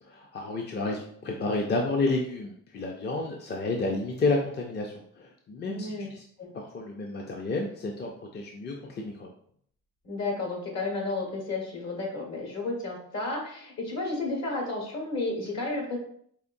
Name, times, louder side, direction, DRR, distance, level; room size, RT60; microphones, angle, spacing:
voice 1, 0.0-6.2 6.5-9.3, left 2 dB, 35° left, 1 dB, 0.5 m, -31 dB
voice 2, 5.7-6.1 6.4-6.5 10.0-16.0, left 2 dB, 60° left, 0 dB, 1.5 m, -32 dB
4.9 x 2.6 x 2.6 m, 0.64 s
cardioid pair, 90°, 30 cm